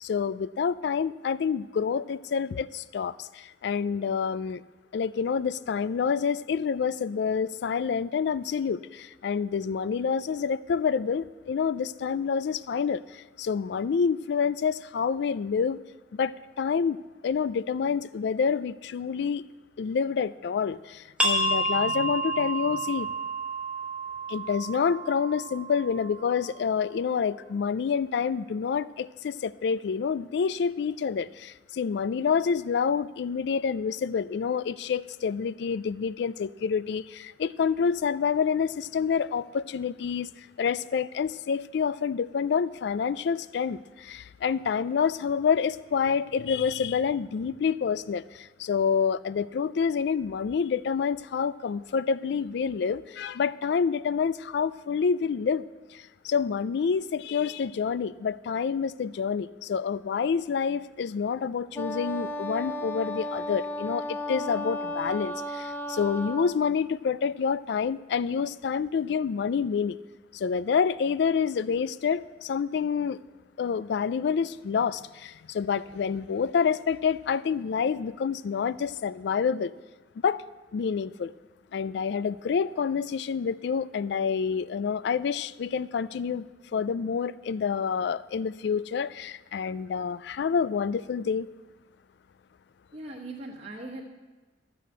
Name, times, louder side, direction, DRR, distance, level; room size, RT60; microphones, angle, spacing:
voice 1, 0.0-4.6 4.9-15.8 16.1-19.4 19.8-23.1 24.3-70.0 70.3-73.2 73.6-79.7 80.2-80.4 80.7-81.3 81.7-86.4 86.7-91.5, left 6 dB, 65° left, 18 dB, 0.3 m, -28 dB
sound 1, 21.2-26.6, right 2 dB, 5° right, 1.1 m, -30 dB
Wind instrument woodwind instrument, 61.7-66.6, left 1 dB, 10° left, 0.5 m, -34 dB
voice 2, 92.9-94.0, right 2 dB, 35° right, -4 dB, 1.4 m, -39 dB
13.5 x 4.9 x 7.8 m, 1.3 s
head